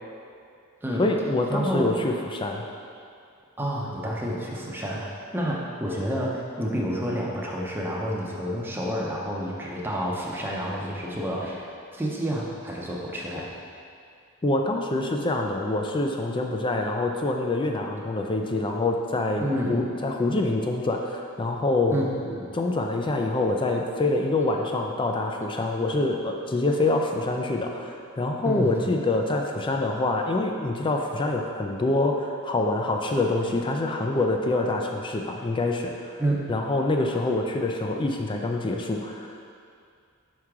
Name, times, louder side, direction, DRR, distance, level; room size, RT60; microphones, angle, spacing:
voice 1, 1.0-2.6 14.4-22.0 22.5-36.2 36.5-39.5, left 2 dB, 20° left, 2 dB, 0.4 m, -26 dB
voice 2, 1.5-1.9 3.6-13.5 19.4-19.8 21.9-22.5 28.4-28.7 36.2-36.5, equal, 10° right, -4 dB, 0.7 m, -29 dB
5.7 x 4.7 x 3.6 m, 2.4 s
head